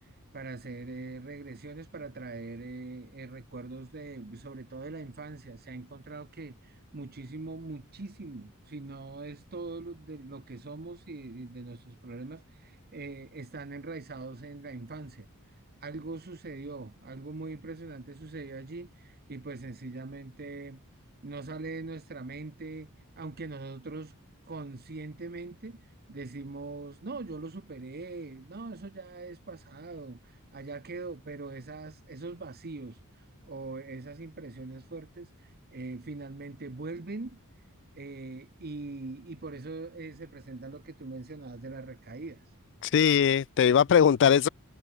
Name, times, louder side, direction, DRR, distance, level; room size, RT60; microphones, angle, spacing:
voice 1, 0.0-15.3 15.8-20.8 21.2-22.9 23.2-24.1 24.4-37.4 38.0-42.4, right 3 dB, 45° right, 1.0 m, -42 dB
voice 2, 42.8-44.5, left 8 dB, 55° left, 0.4 m, -21 dB
head